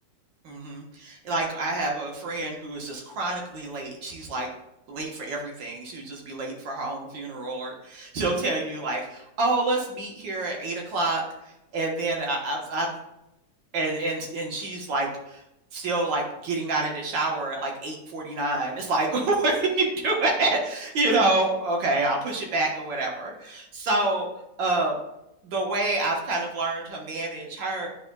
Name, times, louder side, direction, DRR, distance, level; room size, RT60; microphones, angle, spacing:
voice 1, 0.4-4.5 4.9-11.2 11.7-13.0 13.7-15.4 15.7-24.3 24.6-25.0 25.4-27.9, right 2 dB, 80° right, 0 dB, 1.9 m, -27 dB
10.0 x 4.2 x 2.2 m, 0.86 s
omnidirectional pair, 2.0 m